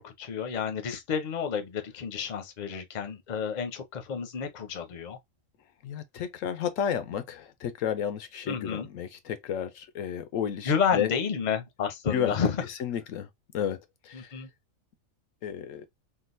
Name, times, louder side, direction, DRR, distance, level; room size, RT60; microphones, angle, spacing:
voice 1, 0.0-5.2 8.5-8.9 10.6-12.7 14.1-14.5, left 6 dB, 40° left, 0.7 m, -30 dB
voice 2, 5.8-11.1 12.1-12.4 12.8-13.3 13.5-13.8 14.1-14.3 15.4-15.9, left 8 dB, 80° left, 1.0 m, -32 dB
3.8 x 2.4 x 2.5 m
omnidirectional pair, 1.3 m